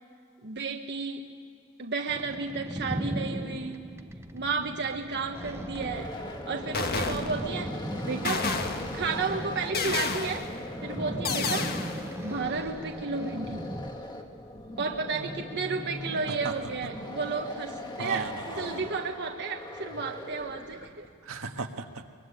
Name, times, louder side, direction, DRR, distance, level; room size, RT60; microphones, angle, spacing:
voice 1, 0.4-1.2 1.8-3.8 4.3-6.1 6.5-7.7 8.1-8.5 8.9-10.5 10.8-11.7 12.2-13.7 14.8-21.1, right 4 dB, 55° right, 3 dB, 1.3 m, -32 dB
sound 1, 2.1-13.9, right 1 dB, 10° right, 0.9 m, -38 dB
sound 2, 5.0-21.1, left 1 dB, 20° left, 1.9 m, -40 dB
sound 3, 5.7-6.2 6.7-7.7 8.2-9.1 9.7-10.6 11.2-12.1, left 4 dB, 45° left, 1.6 m, -31 dB
voice 2, 16.4-16.9 18.0-18.8 21.2-22.1, right 3 dB, 75° right, 4 dB, 1.6 m, -36 dB
23.0 x 23.0 x 9.8 m, 2.4 s
head